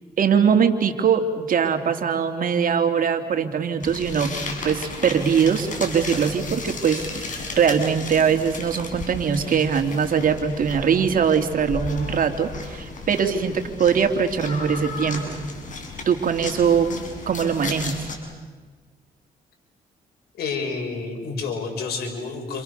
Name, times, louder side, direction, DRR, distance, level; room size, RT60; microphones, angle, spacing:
voice 1, 0.2-15.4 16.0-18.0, right 7 dB, 60° right, 6 dB, 3.0 m, -22 dB
sound 1, 3.8-18.2, left 3 dB, 50° left, 6.6 m, -34 dB
voice 2, 20.4-22.6, left 4 dB, 85° left, 2 dB, 5.9 m, -29 dB
29.5 x 28.5 x 6.8 m, 1.4 s
cardioid pair, 75°, 16 cm